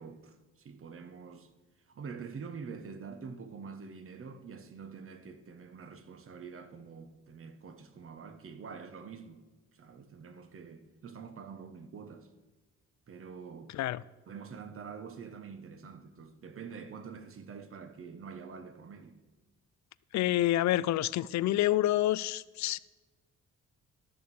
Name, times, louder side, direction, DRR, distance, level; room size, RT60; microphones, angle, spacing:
voice 1, 0.0-1.5 1.9-9.4 9.7-12.3 13.1-13.7 14.3-19.2, right 5 dB, 45° right, 1.2 m, -46 dB
voice 2, 13.7-14.0 20.1-22.8, left 14 dB, 65° left, 0.4 m, -28 dB
12.5 x 6.6 x 5.4 m
cardioid pair, 90°, 30 cm